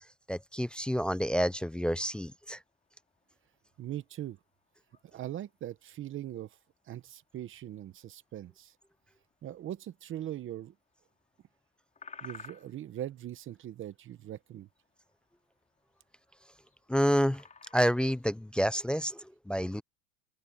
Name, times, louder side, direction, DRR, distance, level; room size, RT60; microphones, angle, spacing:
voice 1, 0.3-2.6 16.9-17.4 17.7-19.8, equal, 5° left, 0.3 m, -29 dB
sound 1, 1.4-18.5, left 5 dB, 20° left, 4.2 m, -58 dB
voice 2, 3.8-4.4 5.0-6.5 6.9-8.7 9.4-10.7 12.2-14.7, right 12 dB, 30° right, 0.9 m, -40 dB
open air
supercardioid pair, 130°, 40 cm